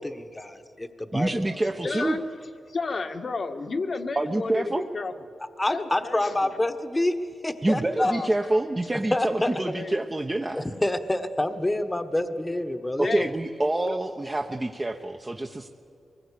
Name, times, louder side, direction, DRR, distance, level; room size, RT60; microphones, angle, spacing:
voice 1, 0.0-1.6 5.6-7.1 7.4-8.1 9.1-9.5 10.5-13.1, left 1 dB, 20° left, 9 dB, 1.3 m, -27 dB
voice 2, 1.1-2.2 4.2-4.8 7.6-10.6 13.0-15.7, right 2 dB, 25° right, 3 dB, 1.1 m, -27 dB
voice 3, 1.8-2.2 2.7-5.1 5.7-6.5 7.9-8.6 9.5-10.0 13.0-13.3 13.9-14.0, left 4 dB, 55° left, 7 dB, 1.6 m, -32 dB
24.0 x 20.0 x 8.5 m, 2.4 s
cardioid pair, 55°, 0 cm